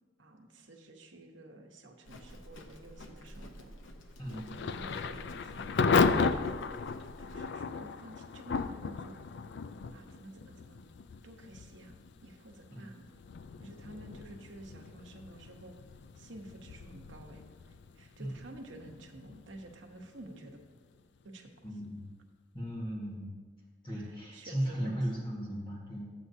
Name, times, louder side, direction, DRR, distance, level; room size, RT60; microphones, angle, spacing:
voice 1, 0.2-3.7 4.6-6.6 7.2-9.2 9.9-10.8 11.2-13.1 13.6-15.8 16.2-17.4 17.9-20.6 21.2-21.7 24.0-25.2, right 1 dB, 85° right, 2 dB, 1.0 m, -51 dB
Livestock farm animals working animals, 2.0-7.4, equal, 85° left, 0.8 m, -51 dB
voice 2, 4.2-4.5 12.7-12.8 18.2-18.3 21.6-22.1 22.5-23.3 23.8-26.1, equal, 25° left, -5 dB, 1.5 m, -36 dB
Thunder / Rain, 4.3-21.0, left 4 dB, 65° left, 0.4 m, -35 dB
12.5 x 7.8 x 2.7 m, 1.4 s
head